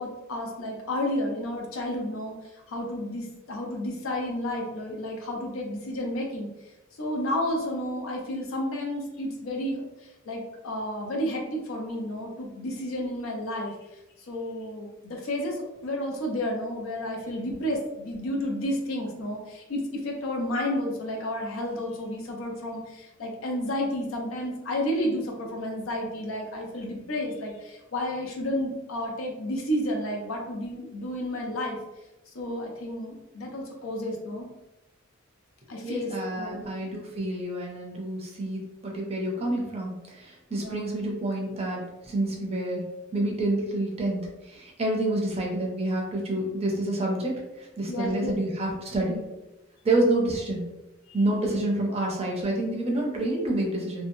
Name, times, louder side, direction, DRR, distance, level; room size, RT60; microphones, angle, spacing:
voice 1, 0.0-6.5 7.0-9.8 10.3-13.7 14.3-31.8 32.3-34.5 35.7-36.7 40.6-40.9 47.9-48.4 51.9-52.1, left 1 dB, 85° left, 1 dB, 0.6 m, -31 dB
voice 2, 35.8-42.8 43.1-49.2 49.8-50.6 51.1-54.0, right 1 dB, 30° right, -1 dB, 0.6 m, -28 dB
2.8 x 2.1 x 2.6 m, 0.99 s
head